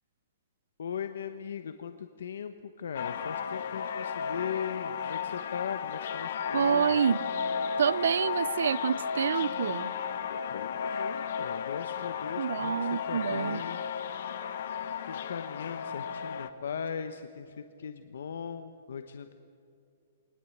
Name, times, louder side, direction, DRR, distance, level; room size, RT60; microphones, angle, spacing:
voice 1, 0.8-7.0 10.3-13.8 15.0-19.3, left 7 dB, 80° left, 1.0 m, -39 dB
sound 1, 2.9-16.5, left 7 dB, 55° left, 1.2 m, -34 dB
voice 2, 6.5-7.2 7.8-9.9 12.4-13.6, right 7 dB, 80° right, 0.6 m, -27 dB
22.0 x 20.0 x 8.5 m
hypercardioid pair, 170°, 0 cm